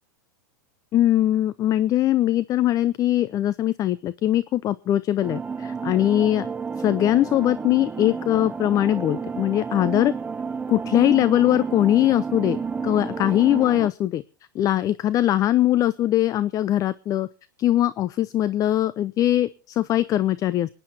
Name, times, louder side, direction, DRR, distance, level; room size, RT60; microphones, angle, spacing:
voice 1, 0.9-6.5 6.8-10.1 10.7-14.2 14.5-17.3 17.6-20.7, left 13 dB, 35° left, 17 dB, 0.6 m, -21 dB
sound 1, 5.2-13.9, right 5 dB, 15° right, 0.5 m, -31 dB
27.0 x 9.9 x 2.8 m, 0.35 s
hypercardioid pair, 110°, 11 cm